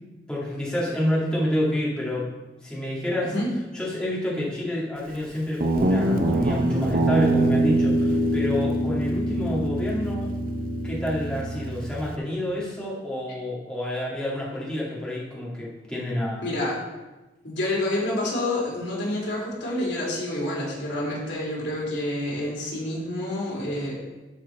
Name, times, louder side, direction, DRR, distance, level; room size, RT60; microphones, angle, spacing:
voice 1, 0.3-2.3 2.6-3.3 3.7-10.3 10.8-16.5, left 1 dB, 5° left, -6 dB, 1.9 m, -28 dB
voice 2, 3.2-3.5 16.4-16.8 17.4-23.9, left 1 dB, 85° left, -4 dB, 3.1 m, -28 dB
Guitar, 5.6-12.2, right 1 dB, 50° right, 0.7 m, -24 dB
12.0 x 4.5 x 4.2 m, 1.1 s
head